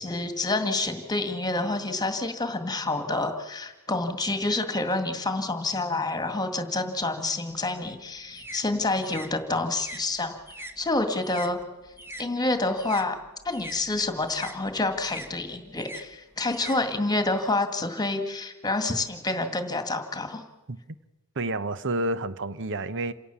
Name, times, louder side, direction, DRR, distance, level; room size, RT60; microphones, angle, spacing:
voice 1, 0.0-10.4 10.8-11.6 12.2-13.2 13.5-20.4, left 2 dB, 20° left, 1.9 m, -28 dB
sound 1, 7.5-12.3 12.6-17.4, right 1 dB, 10° right, 1.3 m, -44 dB
voice 2, 21.3-23.1, right 2 dB, 60° right, 1.0 m, -29 dB
28.0 x 17.0 x 7.1 m
head